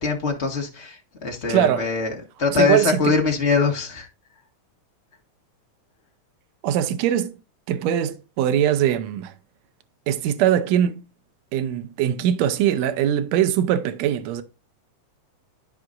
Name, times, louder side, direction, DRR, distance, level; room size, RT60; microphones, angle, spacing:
voice 1, 0.0-4.1, left 4 dB, 30° left, 1.5 m, -23 dB
voice 2, 1.5-1.9 2.6-3.1 6.6-7.4 7.7-9.3 10.1-11.0 11.5-14.4, right 10 dB, 75° right, 1.9 m, -21 dB
12.5 x 4.9 x 2.5 m
omnidirectional pair, 3.4 m